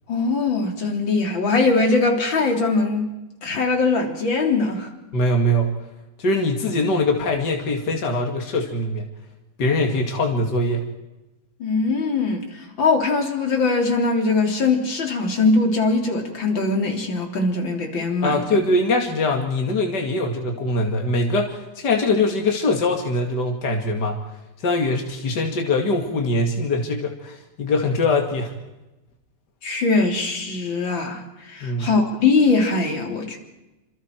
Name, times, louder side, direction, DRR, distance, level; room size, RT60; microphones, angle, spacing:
voice 1, 0.1-3.1 3.4-4.9 11.6-12.5 12.8-18.3 29.6-33.4, left 3 dB, 90° left, 2 dB, 4.1 m, -21 dB
voice 2, 5.1-5.7 6.2-9.1 9.6-10.8 18.2-24.2 24.6-28.5 31.6-31.9, left 2 dB, 65° left, 2 dB, 2.8 m, -22 dB
28.0 x 27.0 x 4.6 m, 1.0 s
omnidirectional pair, 2.0 m